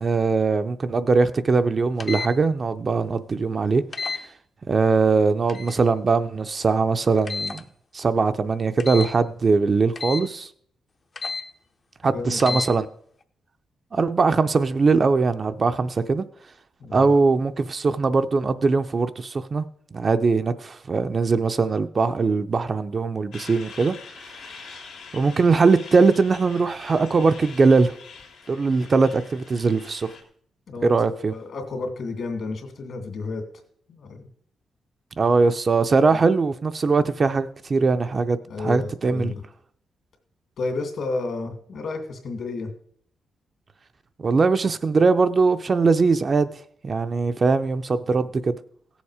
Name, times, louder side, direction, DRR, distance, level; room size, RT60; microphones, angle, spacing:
voice 1, 0.0-3.8 4.1-4.2 4.7-7.6 7.9-10.5 12.0-12.9 13.9-16.3 16.9-19.7 19.9-23.9 25.1-27.9 28.5-30.1 30.8-31.3 35.2-39.3 44.2-46.5 46.8-48.5, right 4 dB, 35° right, 0.5 m, -21 dB
sound 1, 2.0-2.3 3.9-4.2 5.5-5.8 7.3-7.6 8.8-9.1 10.0-10.2 11.2-11.4 12.4-12.7, left 4 dB, 35° left, 0.7 m, -30 dB
voice 2, 12.0-12.6 16.8-17.1 30.7-33.4 33.9-34.3 36.1-36.2 38.5-39.4 40.6-42.7, left 3 dB, 60° left, 2.4 m, -31 dB
Truck, 23.3-30.2, left 5 dB, 85° left, 2.4 m, -44 dB
16.5 x 7.2 x 4.9 m
cardioid pair, 125°, 0 cm